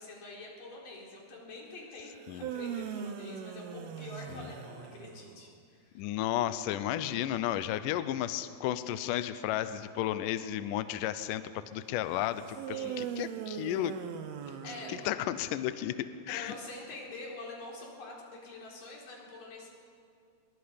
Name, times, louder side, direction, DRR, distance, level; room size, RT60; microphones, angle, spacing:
voice 1, 0.0-6.1 12.7-13.1 14.4-15.1 16.3-19.7, left 2 dB, 55° left, -3 dB, 5.4 m, -46 dB
sound 1, 2.2-5.4 12.5-15.5, right 9 dB, 75° right, 2.8 m, -40 dB
voice 2, 5.9-14.0 14.9-16.5, left 12 dB, 85° left, 12 dB, 1.9 m, -33 dB
23.5 x 22.5 x 5.2 m, 2.3 s
omnidirectional pair, 4.7 m